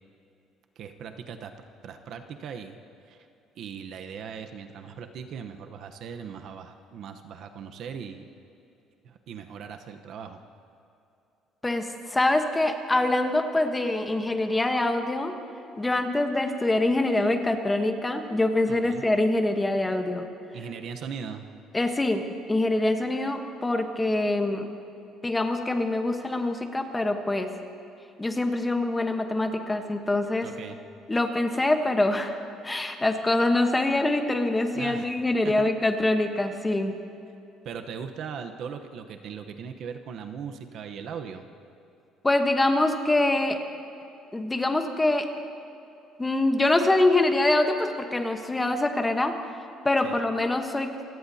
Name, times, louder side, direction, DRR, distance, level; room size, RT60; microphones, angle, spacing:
voice 1, 0.8-1.5 1.8-2.8 3.1-3.2 3.6-8.3 9.0-10.4 18.7-19.0 20.5-21.5 30.4-30.8 34.7-35.1 35.4-35.7 37.6-41.5 50.0-50.2, right 7 dB, 60° right, 6 dB, 1.0 m, -39 dB
voice 2, 11.6-15.4 15.8-20.3 21.7-24.7 25.2-27.5 28.2-30.5 31.1-32.4 32.6-36.9 42.2-43.6 44.3-45.3 46.2-49.3 49.8-50.9, left 2 dB, 10° left, 5 dB, 1.1 m, -24 dB
26.5 x 17.5 x 2.8 m, 2.8 s
cardioid pair, 135°, 0 cm